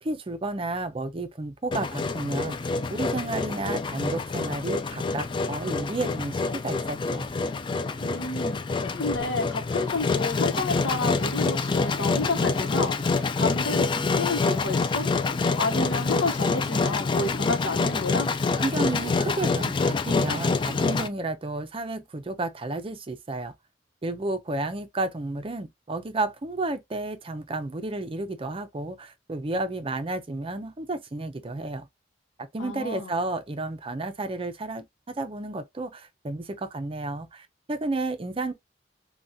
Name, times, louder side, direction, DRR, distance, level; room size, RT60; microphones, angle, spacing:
voice 1, 0.0-7.3 18.6-23.5 24.0-31.9 32.4-38.5, right 2 dB, 30° right, 0.5 m, -32 dB
Engine, 1.7-21.1, left 4 dB, 25° left, 0.3 m, -26 dB
voice 2, 8.0-15.1 15.6-18.3 32.6-33.1, left 3 dB, 85° left, 0.9 m, -30 dB
3.5 x 2.2 x 2.6 m
head